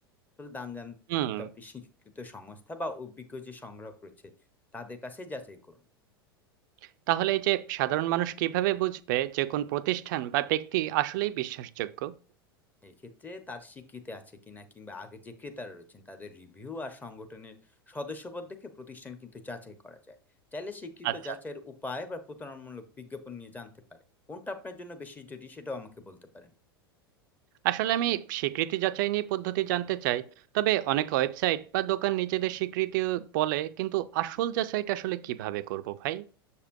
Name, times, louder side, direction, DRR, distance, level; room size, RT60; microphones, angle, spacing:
voice 1, 0.4-1.0 1.2-1.9 2.1-4.1 4.7-5.8 12.8-17.5 17.9-20.1 20.5-23.7 24.3-26.5, left 2 dB, 15° left, 1.1 m, -41 dB
voice 2, 1.1-1.5 7.1-12.1 21.0-21.2 27.6-30.3 30.5-36.2, right 15 dB, 55° right, 0.5 m, -28 dB
6.9 x 6.8 x 2.7 m
figure-of-eight pair, 85°, 13 cm